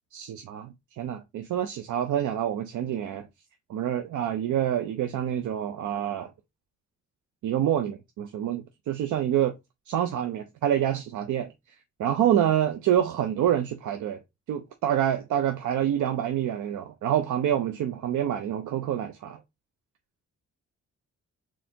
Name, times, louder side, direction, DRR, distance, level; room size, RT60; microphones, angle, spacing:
voice 1, 0.1-3.3 3.7-6.3 7.4-9.5 9.9-11.5 12.0-14.2 14.5-19.4, right 10 dB, 85° right, 0.6 m, -27 dB
4.3 x 3.8 x 2.8 m
cardioid pair, 130°, 29 cm